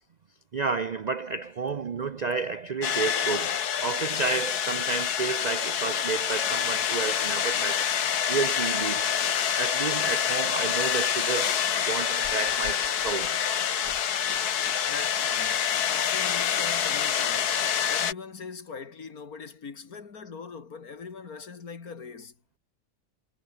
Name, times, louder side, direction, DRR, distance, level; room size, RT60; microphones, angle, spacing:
voice 1, 0.5-7.9 8.3-9.2 9.6-13.4, right 4 dB, 65° right, 0.4 m, -31 dB
sound 1, 2.8-18.1, left 8 dB, 90° left, 1.8 m, -27 dB
voice 2, 14.9-17.6 17.9-22.3, left 5 dB, 70° left, 2.6 m, -41 dB
omnidirectional pair, 1.6 m